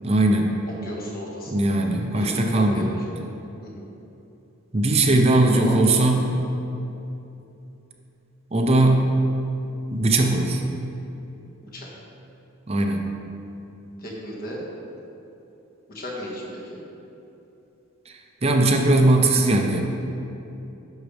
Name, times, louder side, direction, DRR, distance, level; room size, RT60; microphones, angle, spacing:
voice 1, 0.0-0.5 1.5-2.9 4.7-6.3 8.5-9.2 9.9-10.6 12.7-13.0 18.1-18.2 18.4-19.8, right 2 dB, 30° right, 3 dB, 0.6 m, -19 dB
voice 2, 0.6-1.7 2.1-3.2 3.6-3.9 5.4-6.2 11.7-11.9 14.0-14.6 15.9-16.8, equal, 45° left, -4 dB, 1.7 m, -35 dB
11.0 x 6.5 x 3.4 m, 2.9 s
head